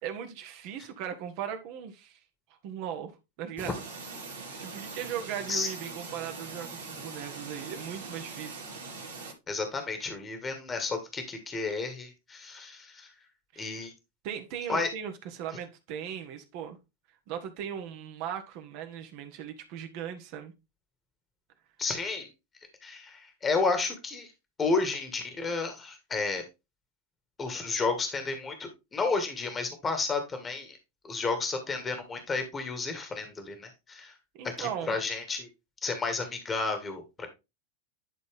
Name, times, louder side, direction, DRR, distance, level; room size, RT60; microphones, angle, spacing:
voice 1, 0.0-2.2 2.6-3.1 3.4-3.8 4.6-8.6 13.5-13.7 14.2-16.8 17.3-20.5 34.3-34.9, right 9 dB, 50° right, 1.5 m, -38 dB
sound 1, 3.6-9.3, right 4 dB, 75° right, 2.3 m, -42 dB
voice 2, 9.5-13.1 13.6-13.9 14.7-14.9 21.8-22.3 22.8-24.3 24.6-26.4 27.4-30.8 31.0-34.1 34.6-35.5 35.8-37.3, left 4 dB, 20° left, 1.9 m, -31 dB
11.0 x 4.0 x 3.6 m
figure-of-eight pair, 90°, 0 cm